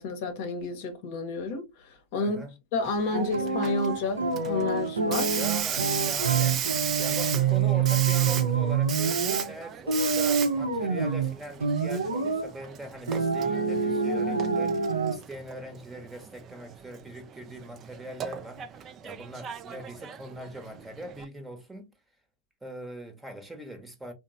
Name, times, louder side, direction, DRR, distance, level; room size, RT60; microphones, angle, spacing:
voice 1, 0.0-1.6 2.1-2.4 2.7-5.4, left 3 dB, 55° left, 0.7 m, -30 dB
voice 2, 2.2-2.6 5.3-6.7 7.0-21.8 22.6-24.1, right 1 dB, 10° right, 0.8 m, -41 dB
Hiss, 2.8-21.2, right 9 dB, 30° right, 0.3 m, -36 dB
sound 1, 3.1-9.5 9.9-11.3 11.6-12.5 13.1-15.2, right 5 dB, 85° right, 0.6 m, -26 dB
2.9 x 2.0 x 2.4 m
figure-of-eight pair, 95°, 0 cm